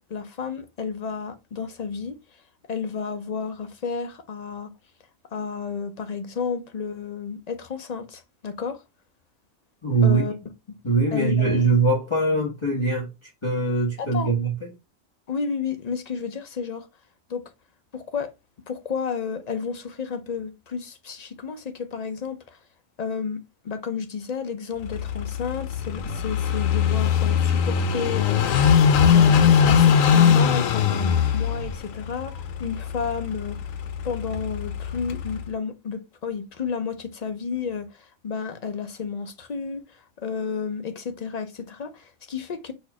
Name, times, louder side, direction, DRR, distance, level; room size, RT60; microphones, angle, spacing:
voice 1, 0.0-2.2 2.7-4.7 5.3-8.8 10.0-10.4 11.1-11.7 14.0-14.3 15.3-16.9 17.3-17.4 17.9-18.3 18.7-22.6 23.0-28.7 29.0-33.7 34.0-42.7, left 6 dB, 50° left, 0.5 m, -31 dB
voice 2, 9.8-10.3 10.8-13.1 13.4-14.7, right 3 dB, 25° left, 1.1 m, -22 dB
Car passing by / Idling, 24.8-35.5, left 7 dB, 90° left, 1.0 m, -21 dB
4.3 x 2.6 x 4.6 m
omnidirectional pair, 1.4 m